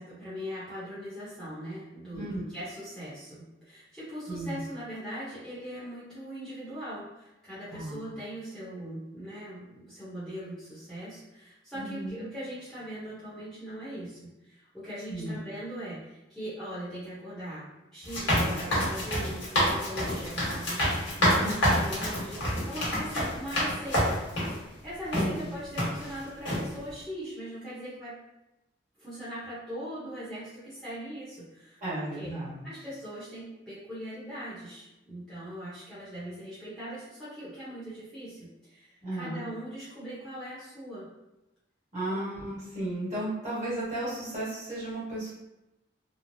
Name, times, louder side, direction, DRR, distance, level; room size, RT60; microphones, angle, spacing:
voice 1, 0.0-24.3 24.6-28.1 29.0-32.3 32.6-41.1 42.1-42.2, equal, ahead, -12 dB, 0.8 m, -40 dB
voice 2, 2.1-2.5 4.3-4.6 7.7-8.1 11.7-12.2 15.1-15.4 21.2-21.7 25.1-25.4 31.8-32.7 39.0-39.4 41.9-45.3, right 1 dB, 40° right, -10 dB, 1.4 m, -34 dB
sound 1, 18.0-24.6 25.1-25.3 25.8-26.2 26.5-26.6, equal, 75° left, 1.2 m, -27 dB
3.0 x 2.0 x 2.6 m, 0.97 s
head